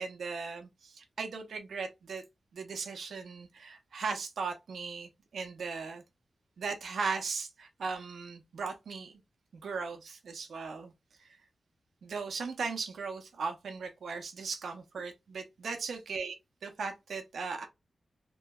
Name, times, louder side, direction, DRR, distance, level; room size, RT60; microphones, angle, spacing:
voice 1, 0.0-2.2 2.5-6.0 6.6-9.2 9.6-10.9 11.2-11.4 12.0-16.3 16.6-17.7, right 4 dB, 85° right, 0.6 m, -38 dB
3.0 x 2.7 x 2.2 m
wide cardioid pair, 80°, 0 cm